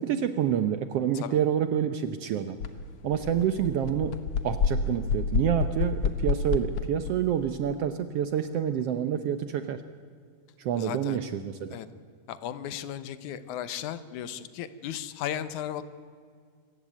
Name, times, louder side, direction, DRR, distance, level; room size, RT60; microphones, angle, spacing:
voice 1, 0.0-2.6 3.0-4.2 4.4-9.8 10.6-11.8, right 9 dB, 70° right, 10 dB, 1.5 m, -28 dB
sound 1, 2.6-2.7 3.0-7.2, left 4 dB, 60° left, 1.7 m, -28 dB
voice 2, 10.8-11.2 11.7-11.9 12.3-15.8, left 10 dB, 75° left, 14 dB, 2.3 m, -35 dB
26.0 x 14.5 x 9.1 m, 2.1 s
omnidirectional pair, 3.5 m